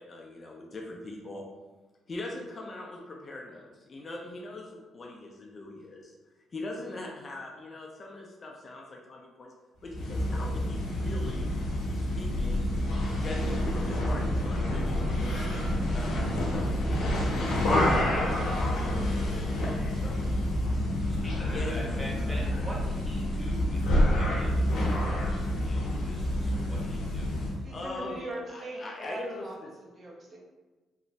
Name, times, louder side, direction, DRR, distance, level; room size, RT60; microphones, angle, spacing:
voice 1, 0.0-1.5 2.1-6.1 6.5-9.5 9.8-11.5 11.9-15.5 15.9-17.3 17.6-20.8 21.5-22.4 27.6-29.7, left 2 dB, 40° left, 0 dB, 0.4 m, -41 dB
sound 1, 9.9-27.6, left 1 dB, 80° left, 0.7 m, -28 dB
voice 2, 21.1-25.0 25.2-27.3, equal, 5° left, -4 dB, 0.9 m, -43 dB
voice 3, 27.6-29.6 29.8-30.4, right 1 dB, 40° right, -2 dB, 0.7 m, -40 dB
3.0 x 2.0 x 2.7 m, 1.2 s
cardioid pair, 90°, 0 cm